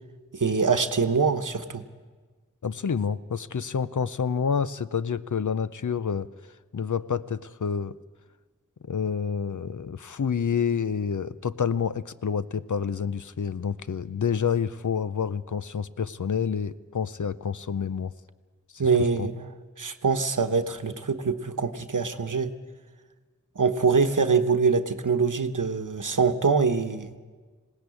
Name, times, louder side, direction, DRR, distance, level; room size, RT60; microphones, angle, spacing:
voice 1, 0.3-1.8 18.8-19.5 19.8-22.5 23.5-27.1, right 5 dB, 80° right, 9 dB, 1.0 m, -24 dB
voice 2, 2.6-6.3 6.7-7.9 8.9-18.1 19.2-19.3, left 6 dB, 70° left, 15 dB, 0.6 m, -28 dB
20.5 x 17.5 x 8.4 m, 1.4 s
wide cardioid pair, 40°, 31 cm